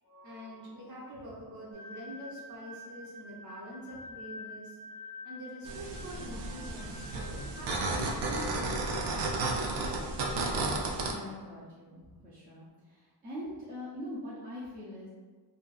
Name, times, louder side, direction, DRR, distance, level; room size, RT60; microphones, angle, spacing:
voice 1, 0.0-4.8 5.2-10.6, equal, 45° right, -7 dB, 0.9 m, -46 dB
sound 1, 1.7-7.9, left 2 dB, 40° left, 0.6 m, -47 dB
sound 2, 5.6-11.1, right 2 dB, 75° right, 0.5 m, -33 dB
voice 2, 11.1-15.1, equal, 20° right, -9 dB, 0.4 m, -43 dB
2.6 x 2.3 x 2.3 m, 1.4 s
wide cardioid pair, 170°, 42 cm